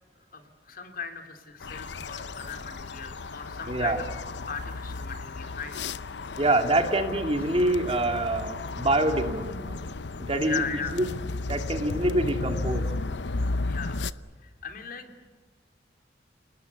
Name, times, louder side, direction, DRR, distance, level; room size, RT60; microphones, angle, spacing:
voice 1, 0.3-5.8 10.4-11.0 13.6-14.0 14.4-15.1, left 6 dB, 50° left, 7 dB, 2.8 m, -38 dB
sound 1, 1.6-14.1, left 3 dB, 70° left, 0.7 m, -34 dB
voice 2, 3.7-4.0 6.4-9.8 10.2-10.6 10.9-11.1 11.5-12.9, right 1 dB, 30° right, 6 dB, 2.3 m, -25 dB
29.5 x 20.0 x 8.2 m, 1.5 s
head